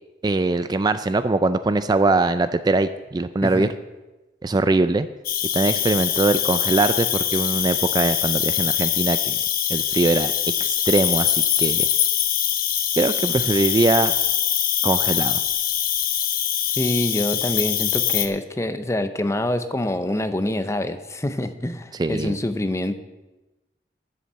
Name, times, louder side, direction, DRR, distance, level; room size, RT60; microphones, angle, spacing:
voice 1, 0.2-3.7 4.4-5.1 5.5-9.4 9.7-10.3 10.6-11.9 13.0-14.1 14.8-15.4 22.0-22.4, right 2 dB, 25° right, 11 dB, 0.4 m, -21 dB
voice 2, 3.4-3.7 16.7-22.9, left 1 dB, 15° left, 10 dB, 0.6 m, -26 dB
Cricket, 5.2-18.3, left 10 dB, 55° left, 0.9 m, -23 dB
11.0 x 7.0 x 7.6 m, 1.1 s
head